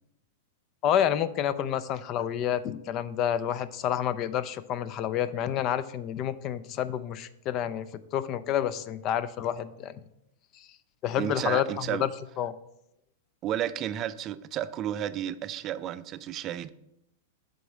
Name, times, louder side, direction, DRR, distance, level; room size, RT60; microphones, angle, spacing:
voice 1, 0.8-9.9 11.0-12.1 12.4-12.5, left 10 dB, 40° left, 15 dB, 0.5 m, -29 dB
voice 2, 11.2-12.1 13.4-16.7, right 11 dB, 35° right, 14 dB, 0.4 m, -32 dB
7.7 x 3.8 x 6.3 m, 0.82 s
figure-of-eight pair, 100°, 0 cm